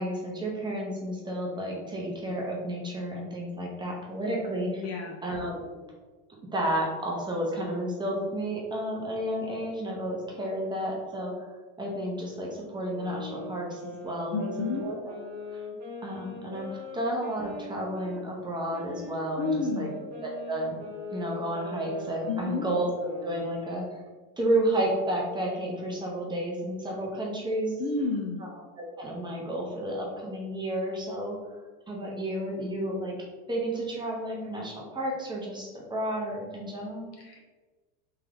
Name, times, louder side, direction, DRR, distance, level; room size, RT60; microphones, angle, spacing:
voice 1, 0.0-4.9 5.2-5.6 6.5-11.5 11.8-15.2 15.5-15.6 16.0-19.9 20.2-20.7 21.1-23.9 24.4-27.7 28.4-28.5 28.8-31.4 31.9-33.1 33.5-37.1, right 1 dB, 10° right, -3 dB, 0.7 m, -31 dB
voice 2, 4.8-5.1 14.3-14.8 19.4-19.9 22.3-22.7 27.8-28.4 37.2-37.5, left 4 dB, 40° left, 1 dB, 0.5 m, -30 dB
sound 1, 12.8-18.2 18.7-23.6, left 2 dB, 40° right, 1.5 m, -41 dB
3.6 x 2.7 x 3.4 m, 1.3 s
supercardioid pair, 130°, 39 cm